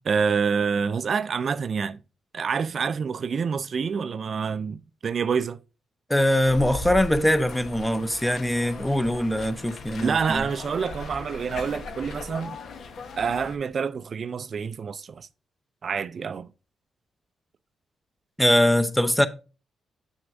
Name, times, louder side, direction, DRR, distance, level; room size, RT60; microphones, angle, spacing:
voice 1, 0.1-2.0 2.3-5.6 10.0-12.6 13.2-15.3 15.8-16.5, right 6 dB, 55° right, 0.3 m, -27 dB
voice 2, 6.1-10.4 18.4-19.3, left 1 dB, 5° left, 0.7 m, -22 dB
sound 1, 6.4-13.6, left 3 dB, 70° left, 1.0 m, -38 dB
7.1 x 6.2 x 2.5 m
cardioid pair, 75°, 0 cm